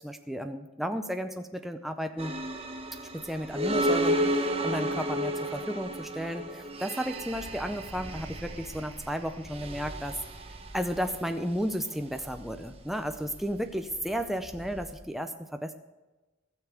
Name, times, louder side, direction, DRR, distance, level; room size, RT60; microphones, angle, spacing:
voice 1, 0.0-2.3 3.1-10.2 10.7-15.7, equal, ahead, 6 dB, 0.5 m, -33 dB
sound 1, 2.2-15.0, equal, 30° right, 1.1 m, -33 dB
15.5 x 7.1 x 7.1 m, 1.1 s
head